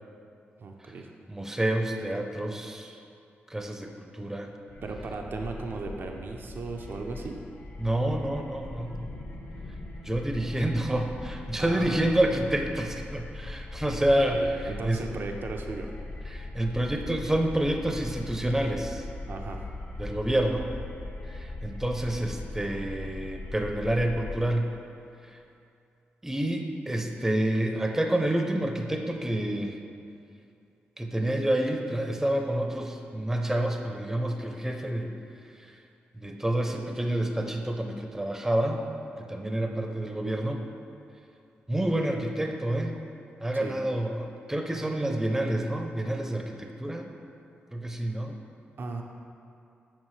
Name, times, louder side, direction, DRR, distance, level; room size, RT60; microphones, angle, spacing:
voice 1, 0.6-1.1 4.8-7.4 11.6-12.4 14.0-15.9 19.3-19.6 43.6-43.8 48.8-49.0, right 3 dB, 60° right, 2 dB, 0.5 m, -36 dB
voice 2, 1.3-3.0 3.5-4.5 7.8-9.1 10.0-15.0 16.3-19.0 20.0-20.7 21.3-24.7 26.2-29.8 31.0-35.1 36.1-38.8 39.3-40.6 41.7-42.9 43.4-47.1 47.7-48.4, right 1 dB, 10° right, 3 dB, 0.6 m, -28 dB
sound 1, 4.7-24.4, left 2 dB, 60° left, 0.7 m, -40 dB
7.4 x 5.1 x 3.2 m, 2.5 s
cardioid pair, 75°, 4 cm